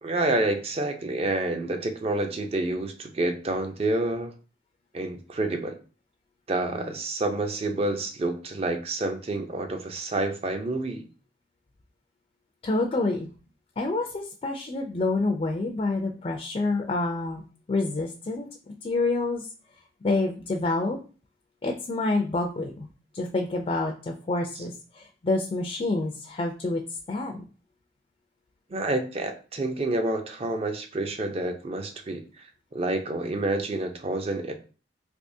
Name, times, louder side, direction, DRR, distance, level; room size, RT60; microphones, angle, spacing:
voice 1, 0.0-4.3 4.9-5.8 6.5-11.1 28.7-32.2 32.7-34.5, right 2 dB, 35° right, 6 dB, 0.4 m, -28 dB
voice 2, 12.6-13.3 13.8-19.5 20.0-21.0 21.6-22.9 23.1-26.8 27.1-27.4, left 2 dB, 30° left, 2 dB, 0.3 m, -28 dB
3.4 x 2.9 x 2.6 m, 0.37 s
head